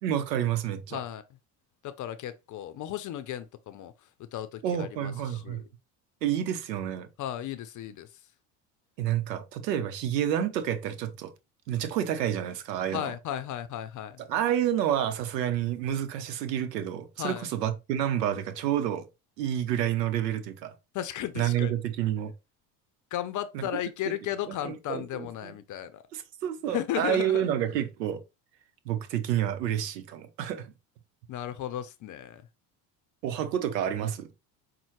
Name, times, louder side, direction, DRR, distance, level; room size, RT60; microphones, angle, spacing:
voice 1, 0.0-1.0 4.6-5.6 6.2-7.1 9.0-11.3 11.7-13.1 14.3-19.1 19.4-20.7 21.4-22.3 23.5-23.7 24.5-25.5 26.1-28.2 28.9-30.7 33.2-34.3, right 10 dB, 85° right, 0.8 m, -29 dB
voice 2, 0.9-1.2 1.8-3.9 4.2-5.7 7.2-8.1 12.9-14.2 17.2-17.5 20.9-21.7 23.1-26.0 26.7-27.5 31.3-32.5, left 11 dB, 40° left, 0.5 m, -35 dB
5.4 x 2.2 x 3.1 m
hypercardioid pair, 70°, 48 cm